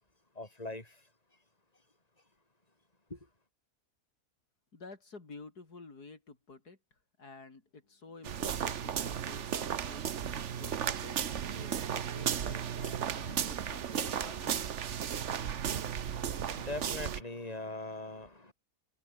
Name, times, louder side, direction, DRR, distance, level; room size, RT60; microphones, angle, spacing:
voice 1, 0.3-1.0 3.1-3.2 10.2-14.4 14.8-18.5, left 2 dB, 25° left, 4.7 m, -46 dB
voice 2, 4.7-6.8 7.2-14.6, left 3 dB, 80° left, 4.1 m, -51 dB
sound 1, 8.2-17.2, right 8 dB, 55° right, 1.2 m, -35 dB
omnidirectional pair, 1.6 m